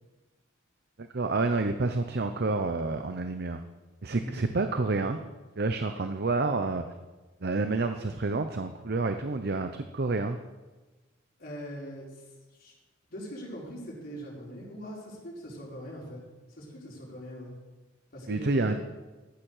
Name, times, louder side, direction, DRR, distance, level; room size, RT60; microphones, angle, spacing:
voice 1, 1.0-3.6 4.0-5.2 5.6-6.8 7.4-10.4 18.3-18.8, right 3 dB, 55° right, 8 dB, 0.7 m, -29 dB
voice 2, 11.4-12.2 12.5-12.7 13.1-16.2 16.5-17.5 18.1-18.8, equal, 50° left, -4 dB, 4.8 m, -41 dB
13.5 x 8.8 x 6.6 m, 1.2 s
head